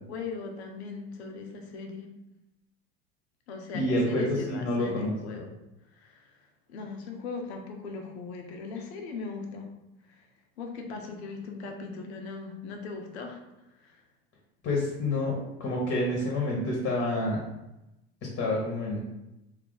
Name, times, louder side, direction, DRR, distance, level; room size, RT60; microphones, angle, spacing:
voice 1, 0.1-2.1 3.5-5.5 5.9-9.7 10.1-10.3 10.6-13.4 13.8-14.0, left 4 dB, 85° left, 3 dB, 0.7 m, -39 dB
voice 2, 3.7-5.4 14.6-17.5 18.2-19.0, left 1 dB, 35° left, -2 dB, 0.9 m, -28 dB
2.7 x 2.5 x 3.8 m, 0.94 s
supercardioid pair, 110°, 32 cm